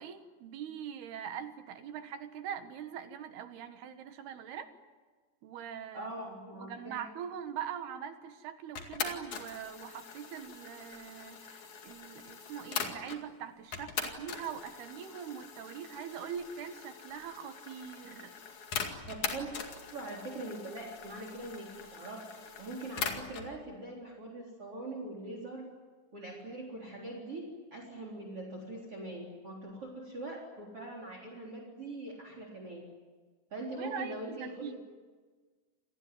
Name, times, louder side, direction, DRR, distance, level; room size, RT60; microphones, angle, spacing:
voice 1, 0.0-4.7 5.4-6.1 6.6-18.3 33.8-34.8, right 8 dB, 70° right, 9 dB, 3.3 m, -42 dB
voice 2, 5.9-7.0 19.1-19.5 19.9-22.2 22.6-25.7 26.1-32.8 33.5-34.8, right 2 dB, 35° right, 2 dB, 4.4 m, -42 dB
sound 1, 8.8-13.2 13.7-23.5, left 6 dB, 50° left, 3.1 m, -41 dB
28.0 x 19.0 x 9.8 m, 1.4 s
omnidirectional pair, 5.1 m